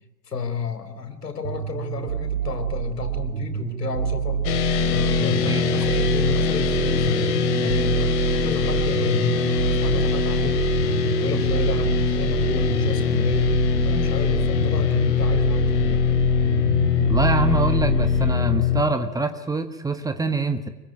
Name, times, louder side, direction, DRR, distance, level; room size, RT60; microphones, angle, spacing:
voice 1, 0.3-4.5 4.9-7.3 7.6-10.6 11.2-13.6 13.8-16.0, left 5 dB, 75° left, 8 dB, 4.6 m, -31 dB
sound 1, 1.4-18.3, right 9 dB, 65° right, 1.8 m, -27 dB
sound 2, 4.4-18.8, left 8 dB, 45° left, 3.4 m, -22 dB
voice 2, 17.1-20.7, right 3 dB, 5° right, 8 dB, 1.5 m, -25 dB
25.5 x 23.5 x 9.1 m, 0.95 s
figure-of-eight pair, 100°, 48 cm